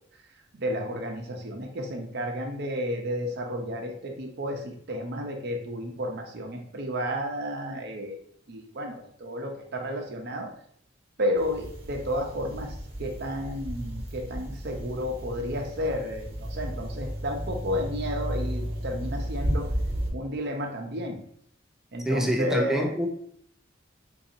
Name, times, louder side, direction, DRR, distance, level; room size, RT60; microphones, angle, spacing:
voice 1, 0.5-8.2 8.5-10.5 11.2-19.7 20.1-21.2 21.9-23.1, equal, 55° right, 2 dB, 0.7 m, -32 dB
sound 1, 11.3-20.1, equal, 30° right, 1.0 m, -33 dB
voice 2, 22.1-23.1, equal, ahead, 1 dB, 0.4 m, -26 dB
4.0 x 2.7 x 2.6 m, 0.65 s
head